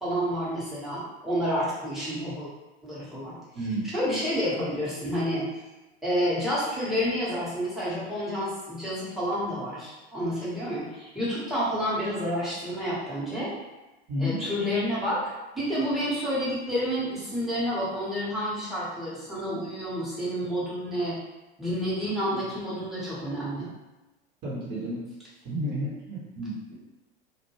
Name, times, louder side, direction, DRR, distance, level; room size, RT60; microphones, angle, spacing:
voice 1, 0.0-2.5 2.8-3.4 3.9-5.5 6.0-13.5 14.2-21.2 21.6-23.7, equal, ahead, -9 dB, 0.9 m, -29 dB
voice 2, 3.5-3.9 14.1-14.4 22.3-22.4 24.4-25.1 25.4-26.8, equal, 30° right, -6 dB, 0.9 m, -31 dB
2.2 x 2.1 x 3.0 m, 1.1 s
figure-of-eight pair, 80°, 31 cm